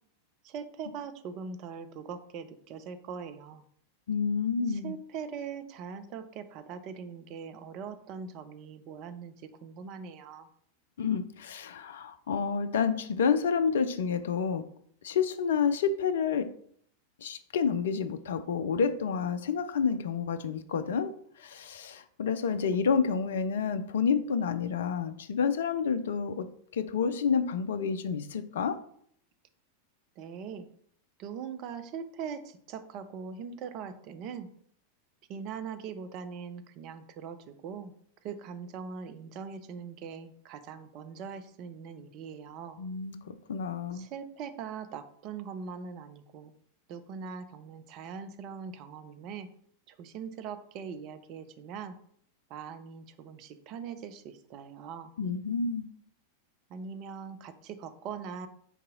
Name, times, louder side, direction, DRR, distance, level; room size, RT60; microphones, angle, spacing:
voice 1, 0.4-3.6 4.7-10.5 30.2-30.7 31.2-34.5 35.3-37.9 38.2-42.8 43.9-46.5 46.9-49.5 49.9-52.0 52.5-55.1 56.7-58.5, right 6 dB, 40° right, 10 dB, 0.4 m, -41 dB
voice 2, 4.1-4.9 11.0-14.6 15.0-16.5 17.2-26.5 26.7-28.8 42.8-44.1 55.2-55.9, left 6 dB, 60° left, 11 dB, 0.3 m, -29 dB
4.6 x 2.8 x 3.8 m, 0.63 s
figure-of-eight pair, 90°, 0 cm